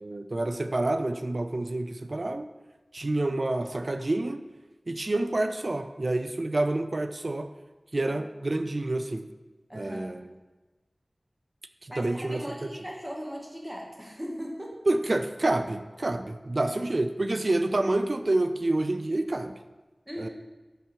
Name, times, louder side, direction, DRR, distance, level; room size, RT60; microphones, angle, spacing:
voice 1, 0.0-2.5 2.9-4.4 4.9-7.5 7.9-9.3 9.7-10.2 11.8-12.7 14.9-19.6 20.2-20.3, right 2 dB, 60° right, 9 dB, 0.4 m, -28 dB
voice 2, 9.7-10.1 11.9-14.7 16.6-16.7 20.1-20.3, equal, 15° right, -2 dB, 1.4 m, -38 dB
5.7 x 3.6 x 5.8 m, 1.2 s
wide cardioid pair, 55°, 0 cm